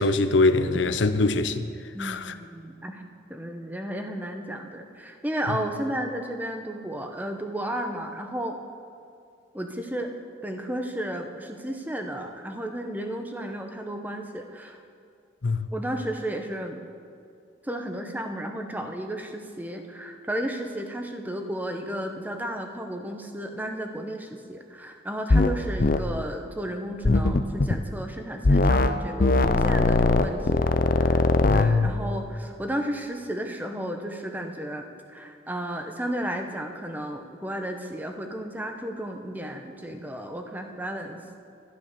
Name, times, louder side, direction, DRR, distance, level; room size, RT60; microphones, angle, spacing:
voice 1, 0.0-1.7 2.0-2.3 15.4-15.6 31.4-31.9, left 3 dB, 85° left, 0.7 m, -23 dB
voice 2, 1.9-3.0 3.3-8.6 9.5-10.1 10.4-14.8 15.7-16.8 17.6-41.2, right 1 dB, 10° right, 0.9 m, -33 dB
sound 1, 25.3-25.5 25.8-26.0 27.0-27.8 28.4-28.9 29.2-31.7, left 2 dB, 50° left, 0.6 m, -20 dB
12.0 x 12.0 x 6.8 m
head